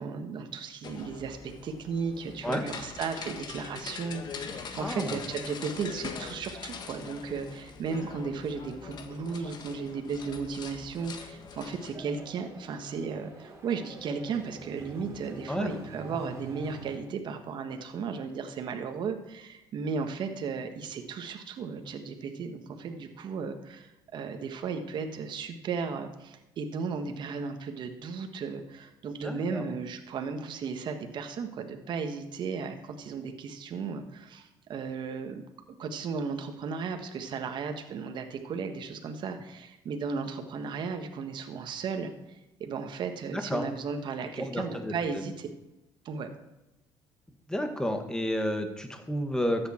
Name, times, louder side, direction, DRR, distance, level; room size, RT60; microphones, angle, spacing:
voice 1, 0.0-35.4 35.8-45.5 46.0-46.3, right 5 dB, 55° right, 5 dB, 1.5 m, -35 dB
sound 1, 0.8-12.0, left 6 dB, 50° left, 1.5 m, -42 dB
voice 2, 4.8-5.2 15.5-15.7 29.2-29.6 43.3-43.6 44.4-44.9 47.5-49.7, left 1 dB, 5° left, 5 dB, 1.7 m, -31 dB
sound 2, 11.8-17.0, right 3 dB, 30° right, 3.7 m, -46 dB
13.5 x 8.7 x 4.4 m, 0.98 s
cardioid pair, 105°, 9 cm